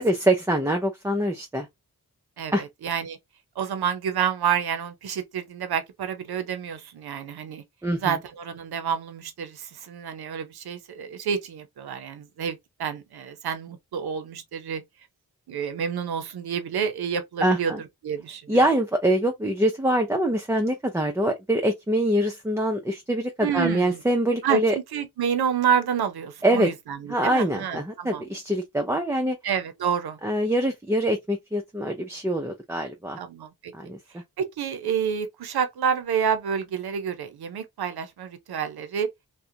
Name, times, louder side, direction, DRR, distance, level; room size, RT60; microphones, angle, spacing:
voice 1, 0.0-1.7 2.5-2.6 7.8-8.2 17.4-17.8 18.5-24.8 26.4-26.7 27.1-29.4 30.2-33.2 33.7-34.0, right 1 dB, 10° right, 0.4 m, -24 dB
voice 2, 2.4-3.2 3.6-7.6 8.0-14.8 15.5-17.7 18.0-18.6 23.4-24.0 24.4-28.2 29.4-30.2 33.2-33.7 34.4-39.1, right 7 dB, 85° right, 0.6 m, -29 dB
2.4 x 2.1 x 2.6 m
cardioid pair, 40°, 37 cm